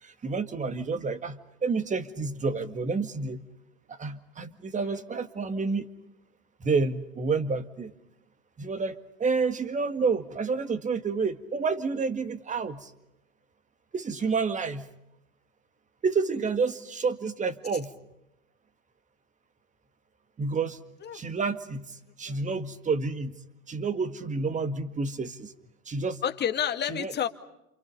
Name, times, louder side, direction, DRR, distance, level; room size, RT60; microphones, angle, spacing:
voice 1, 0.0-3.4 3.9-5.9 6.6-7.9 8.6-12.9 13.9-14.9 16.0-17.9 20.4-20.8 21.1-23.4 23.7-25.5 25.9-26.2 26.9-27.1, right 4 dB, 15° right, 10 dB, 2.0 m, -29 dB
voice 2, 26.2-27.3, left 9 dB, 25° left, 7 dB, 2.1 m, -30 dB
29.5 x 28.0 x 5.4 m, 0.85 s
hypercardioid pair, 100°, 41 cm